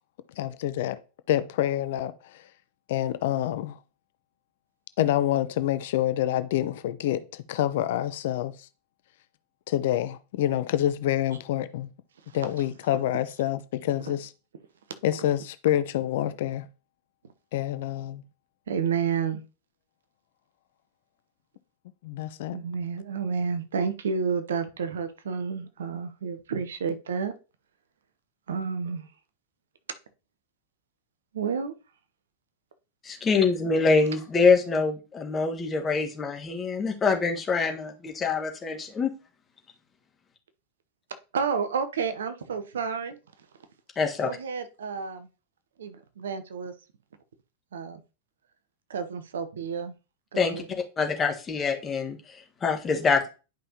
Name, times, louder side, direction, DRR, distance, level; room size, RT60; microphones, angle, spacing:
voice 1, 0.4-1.0 1.3-2.4 2.9-3.8 5.0-8.5 9.7-11.9 12.3-14.3 15.0-16.7 17.5-18.2 22.0-22.6, left 12 dB, 55° left, 0.5 m, -27 dB
voice 2, 18.7-19.4 22.5-27.3 28.5-29.1 31.3-31.7 41.3-43.2 44.2-45.3 45.8-46.7 47.7-48.0 48.9-49.9 50.3-50.7, right 6 dB, 65° right, 0.9 m, -30 dB
voice 3, 33.0-39.1 44.0-44.3 50.3-50.6 51.0-53.3, left 4 dB, 20° left, 1.5 m, -25 dB
10.5 x 5.4 x 2.9 m
figure-of-eight pair, 90°, 0 cm